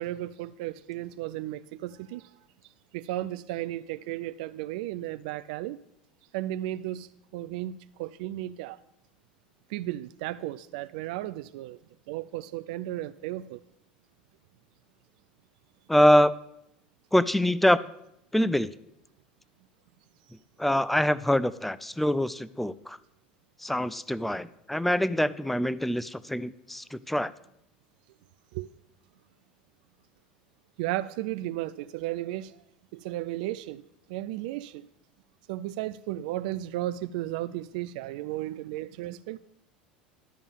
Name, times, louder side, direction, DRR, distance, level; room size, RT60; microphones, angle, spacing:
voice 1, 0.0-2.3 2.9-5.8 6.3-8.8 9.7-11.8 12.1-13.6 28.5-28.7 30.8-32.6 32.9-33.8 34.1-34.9 35.5-39.4, right 15 dB, 65° right, 0.3 m, -34 dB
voice 2, 15.9-16.3 17.1-17.8 18.3-18.7 20.6-23.0 23.6-27.3, equal, 5° left, 0.4 m, -24 dB
12.0 x 5.3 x 7.1 m
hypercardioid pair, 80°, 5 cm